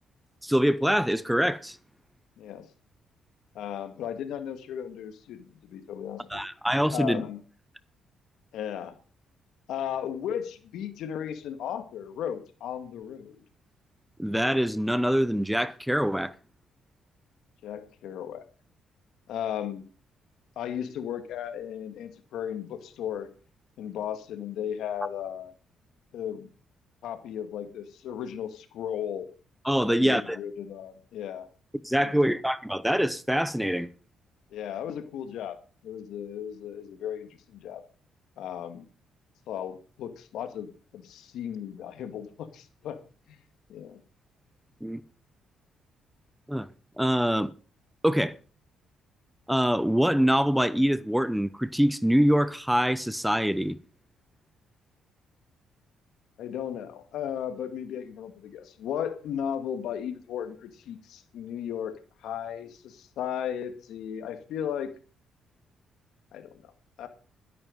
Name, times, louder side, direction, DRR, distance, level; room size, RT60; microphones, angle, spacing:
voice 1, 0.4-1.8 6.3-7.2 14.2-16.3 29.6-30.4 31.8-33.9 44.8-45.0 46.5-46.7 47.0-47.5 48.0-48.4 49.5-53.8, equal, 5° right, 0.8 m, -24 dB
voice 2, 2.4-2.7 3.5-6.4 6.9-7.4 8.5-8.9 9.7-13.4 17.6-18.5 19.3-19.9 20.6-23.3 23.8-25.5 26.1-26.5 27.0-29.3 29.8-31.5 31.9-32.2 34.5-35.6 35.8-37.8 38.4-38.9 39.5-43.0 43.3-43.4 43.7-44.0 56.4-62.0 62.2-64.9 66.3-66.7 67.0-67.1, left 9 dB, 80° left, 2.0 m, -35 dB
12.5 x 11.0 x 5.3 m
cardioid pair, 90°, 0 cm